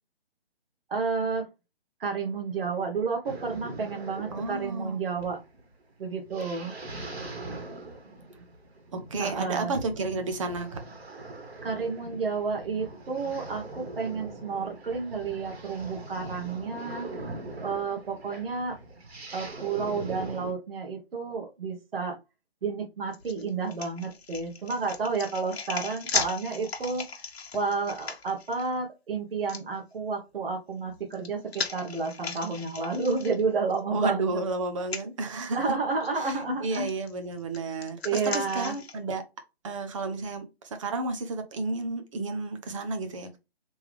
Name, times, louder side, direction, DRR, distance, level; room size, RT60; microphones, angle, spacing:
voice 1, 0.9-1.5 2.0-5.4 6.0-6.7 9.2-9.7 11.6-17.1 17.6-18.8 19.3-22.2 22.6-27.0 27.5-34.4 35.5-36.9 38.0-38.7, right 4 dB, 60° right, 1.4 m, -31 dB
sound 1, 3.2-20.5, right 2 dB, 75° right, 1.8 m, -41 dB
voice 2, 4.3-5.0 8.9-10.7 33.9-35.8 36.2-39.2 39.6-43.4, right 3 dB, 30° right, 0.7 m, -32 dB
sound 2, 23.1-28.7 29.5-29.6 30.8-33.8 34.2-34.3 34.8-35.0 36.0-36.3 36.7-39.0, left 5 dB, 70° left, 1.0 m, -37 dB
3.5 x 3.3 x 3.4 m
hypercardioid pair, 150°, 32 cm